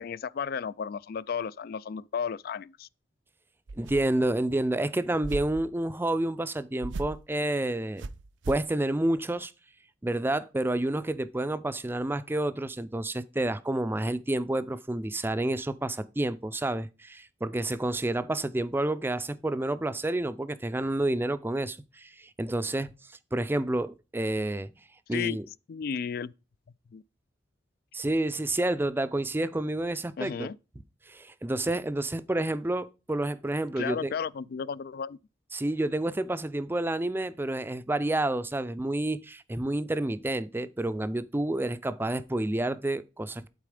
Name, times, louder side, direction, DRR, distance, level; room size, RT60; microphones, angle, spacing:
voice 1, 0.0-2.9 25.1-25.4 25.7-26.3 26.9-27.0 30.2-30.6 33.8-35.2, left 6 dB, 55° left, 0.3 m, -33 dB
sound 1, 3.7-4.3 5.2-5.7 6.8-7.3 8.0-8.7, right 3 dB, 75° right, 0.5 m, -37 dB
voice 2, 3.8-8.0 8.5-9.5 10.0-22.9 23.3-24.7 25.1-25.5 27.9-30.5 31.1-34.1 35.5-43.5, right 1 dB, 10° right, 0.4 m, -29 dB
11.5 x 4.2 x 5.0 m
head